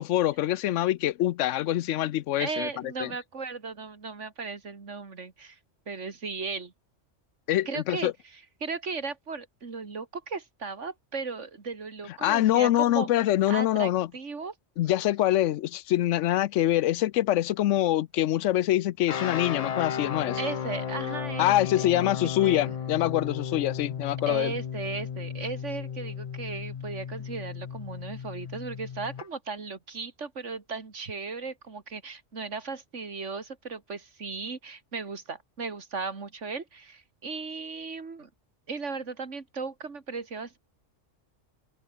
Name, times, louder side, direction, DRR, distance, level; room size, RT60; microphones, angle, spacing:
voice 1, 0.0-3.1 7.5-8.1 12.2-14.1 14.8-20.4 21.4-24.6, left 14 dB, 90° left, 0.9 m, -25 dB
voice 2, 2.4-5.6 5.9-6.7 7.7-8.1 8.6-13.1 13.5-14.5 20.4-22.1 22.4-22.8 24.3-38.3 38.7-40.6, right 4 dB, 80° right, 2.6 m, -36 dB
sound 1, 19.1-29.3, left 7 dB, 45° left, 0.5 m, -34 dB
omnidirectional pair, 1.2 m